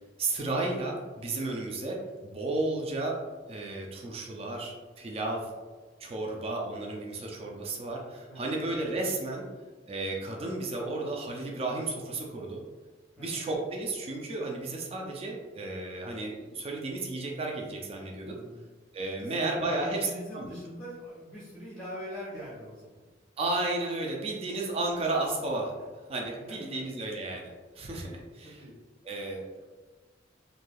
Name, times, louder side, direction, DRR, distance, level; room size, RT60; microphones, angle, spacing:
voice 1, 0.2-3.2 3.5-5.5 6.0-9.4 9.9-12.6 13.2-18.4 18.9-20.5 23.4-25.7 26.1-28.7 29.0-29.7, right 2 dB, 30° right, 0 dB, 0.4 m, -33 dB
voice 2, 8.3-8.6 13.2-13.4 18.3-18.6 19.2-23.0 26.5-26.6 28.4-28.8, equal, 5° left, -9 dB, 0.8 m, -42 dB
3.2 x 2.6 x 2.3 m, 1.3 s
head